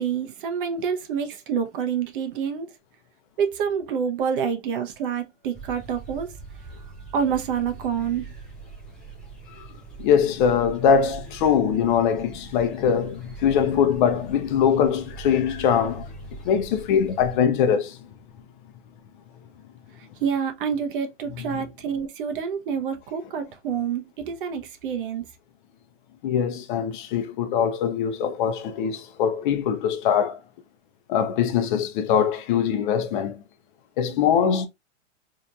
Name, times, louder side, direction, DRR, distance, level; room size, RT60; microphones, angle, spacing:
voice 1, 0.0-2.7 3.4-6.3 7.1-8.3 20.2-25.2, right 7 dB, 45° right, 0.7 m, -27 dB
sound 1, 5.5-17.4, right 3 dB, ahead, 0.4 m, -42 dB
voice 2, 10.0-16.1 16.4-18.0 26.2-30.4 31.1-33.4 34.0-34.7, left 7 dB, 40° left, 0.7 m, -22 dB
4.2 x 2.8 x 2.3 m
hypercardioid pair, 130°, 37 cm